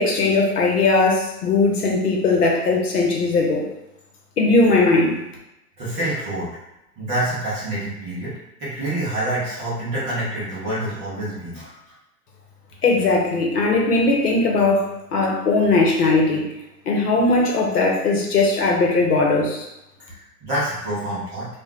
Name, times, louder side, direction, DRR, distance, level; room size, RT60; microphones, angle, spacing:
voice 1, 0.0-3.7 4.4-5.2 12.8-16.5 16.9-19.7, left 3 dB, 70° left, -1 dB, 1.0 m, -19 dB
voice 2, 5.8-6.5 7.0-8.3 8.6-11.9 20.0-21.5, right 1 dB, 15° right, -11 dB, 0.5 m, -27 dB
2.4 x 2.2 x 3.6 m, 0.89 s
hypercardioid pair, 125°, 48 cm